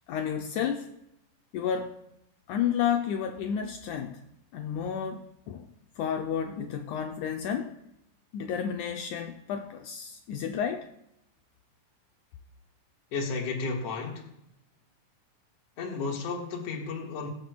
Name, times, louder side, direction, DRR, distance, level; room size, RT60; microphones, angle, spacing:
voice 1, 0.1-0.9 1.5-2.0 2.5-4.3 4.5-5.7 6.0-7.8 8.3-10.9, left 8 dB, 85° left, 5 dB, 1.8 m, -31 dB
voice 2, 13.1-14.2 15.8-17.3, left 4 dB, 50° left, -1 dB, 2.4 m, -33 dB
22.0 x 7.9 x 2.3 m, 0.78 s
omnidirectional pair, 4.0 m